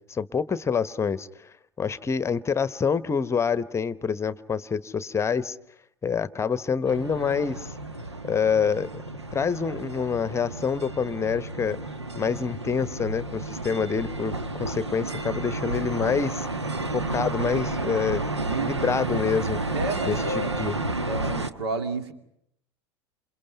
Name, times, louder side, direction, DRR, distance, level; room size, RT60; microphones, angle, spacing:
voice 1, 0.1-5.6 6.0-7.7 8.2-9.0 9.3-11.8 12.1-14.3 14.6-16.5 16.9-18.2 18.6-19.6 20.0-20.7, left 6 dB, 20° left, 16 dB, 1.0 m, -27 dB
sound 1, 6.9-21.5, right 2 dB, 90° right, 1.2 m, -31 dB
voice 2, 18.4-18.7 19.7-20.5 21.1-22.1, right 3 dB, 70° right, 8 dB, 2.5 m, -31 dB
28.0 x 28.0 x 5.7 m, 0.76 s
figure-of-eight pair, 80°, 14 cm